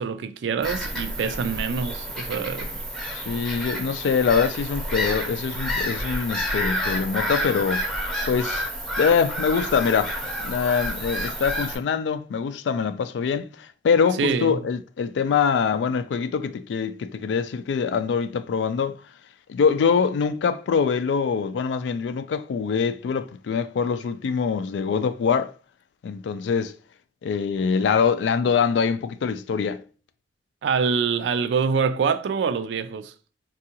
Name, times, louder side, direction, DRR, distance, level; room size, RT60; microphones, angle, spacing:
voice 1, 0.0-2.8 14.2-14.6 30.6-33.1, right 5 dB, 85° right, 0.3 m, -25 dB
Bird vocalization bird call bird song / Gull seagull, 0.6-11.7, equal, 5° left, 0.6 m, -29 dB
voice 2, 3.1-7.9 8.3-8.6 9.0-10.1 10.4-19.0 19.5-25.5 26.0-26.7 27.2-29.8, left 6 dB, 80° left, 0.3 m, -24 dB
3.6 x 2.3 x 2.8 m
head